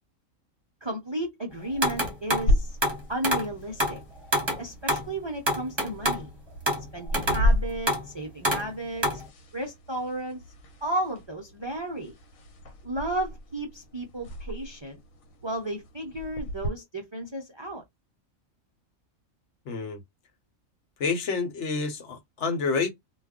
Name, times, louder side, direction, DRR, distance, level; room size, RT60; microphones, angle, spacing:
voice 1, 0.8-2.8 3.1-4.0 4.6-6.3 6.9-9.2 9.5-10.4 10.8-12.1 12.8-15.0 15.4-17.8, right 1 dB, 40° right, 0.4 m, -33 dB
sound 1, 1.8-2.5 2.8-3.5 3.8-4.0 4.3-5.1 5.5-6.3 6.7-6.9 7.1-7.5 7.9-8.1 8.4-8.7 9.0-9.3, equal, 25° right, 0.8 m, -27 dB
sound 2, 2.5-16.7, left 1 dB, 90° left, 1.2 m, -33 dB
voice 2, 19.7-20.0 21.0-22.9, left 4 dB, 65° left, 1.0 m, -28 dB
2.3 x 2.2 x 3.6 m
omnidirectional pair, 1.4 m